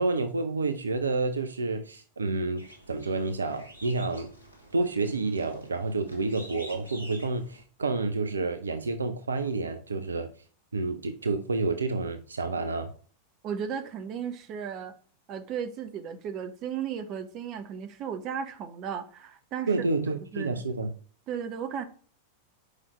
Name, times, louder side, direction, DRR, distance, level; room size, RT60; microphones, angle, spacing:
voice 1, 0.0-4.3 4.7-10.3 10.7-12.9 19.7-20.9, right 3 dB, 75° right, 8 dB, 0.6 m, -29 dB
sound 1, 2.6-7.6, right 1 dB, 85° left, 2.1 m, -49 dB
voice 2, 13.4-14.9 15.3-19.7 20.3-20.6 21.3-21.8, right 7 dB, 35° right, 8 dB, 1.1 m, -35 dB
5.5 x 4.9 x 6.5 m, 0.42 s
figure-of-eight pair, 90°, 0 cm